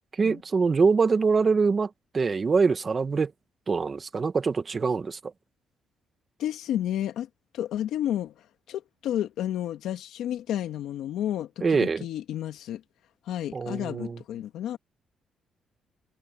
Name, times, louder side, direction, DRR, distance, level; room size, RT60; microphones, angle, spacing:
voice 1, 0.2-3.3 3.7-5.3 11.6-12.0 13.5-14.2, right 4 dB, 35° right, 1.4 m, -24 dB
voice 2, 6.4-7.3 7.5-12.8 13.3-14.8, left 11 dB, 85° left, 2.2 m, -31 dB
cardioid pair, 100°, 0 cm